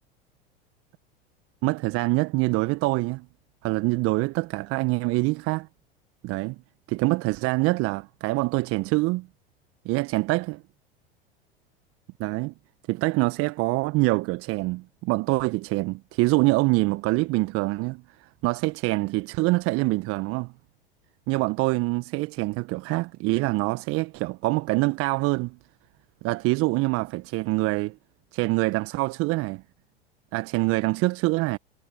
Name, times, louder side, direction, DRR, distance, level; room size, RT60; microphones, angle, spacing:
voice 1, 1.6-3.3 3.6-5.7 6.2-6.6 6.9-9.3 9.8-10.6 12.2-12.5 12.9-20.5 21.3-25.6 26.2-28.0 28.3-29.6 30.3-31.6, right 23 dB, 50° right, 1.3 m, -25 dB
figure-of-eight pair, 80°, 31 cm